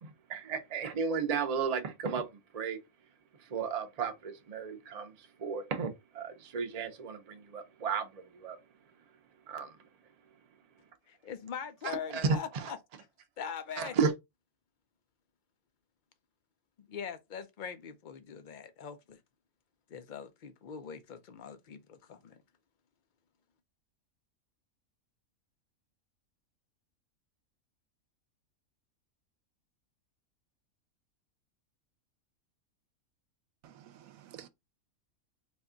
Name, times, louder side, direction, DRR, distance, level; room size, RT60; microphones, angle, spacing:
voice 1, 0.0-2.8 3.4-8.6 9.5-9.8 11.8-12.7 13.8-14.1, right 5 dB, 40° right, 0.6 m, -34 dB
voice 2, 11.1-12.8 13.4-14.0 16.8-19.2 19.9-22.4, left 7 dB, 70° left, 0.4 m, -42 dB
voice 3, 33.6-34.5, right 11 dB, 80° right, 1.0 m, -52 dB
4.3 x 2.3 x 3.7 m
omnidirectional pair, 1.5 m